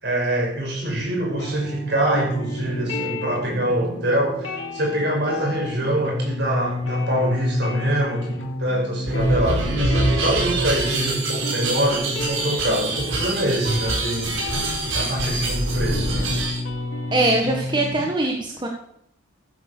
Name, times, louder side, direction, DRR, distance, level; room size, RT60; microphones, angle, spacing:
voice 1, 0.0-16.3, right 1 dB, 55° right, 0 dB, 6.1 m, -25 dB
sound 1, 1.4-18.0, left 1 dB, 80° left, 3.1 m, -31 dB
sound 2, 9.0-16.6, right 2 dB, 75° right, 5.7 m, -25 dB
voice 2, 17.1-18.7, right 2 dB, 20° right, 1 dB, 1.5 m, -22 dB
15.0 x 9.7 x 6.8 m, 0.73 s
head